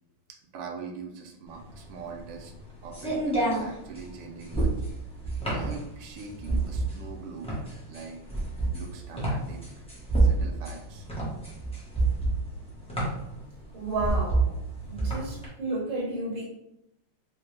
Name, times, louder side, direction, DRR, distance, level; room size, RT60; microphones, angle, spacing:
voice 1, 0.5-2.5 2.8-4.7 5.5-7.5 7.9-8.2 8.7-9.6 10.2-11.1, right 5 dB, 90° right, 2 dB, 1.6 m, -42 dB
sound 1, 1.6-15.4, right 2 dB, 10° left, 0.3 m, -28 dB
voice 2, 13.7-14.5 14.9-16.5, right 2 dB, 30° right, -6 dB, 1.1 m, -32 dB
4.3 x 2.2 x 3.2 m, 0.82 s
omnidirectional pair, 2.4 m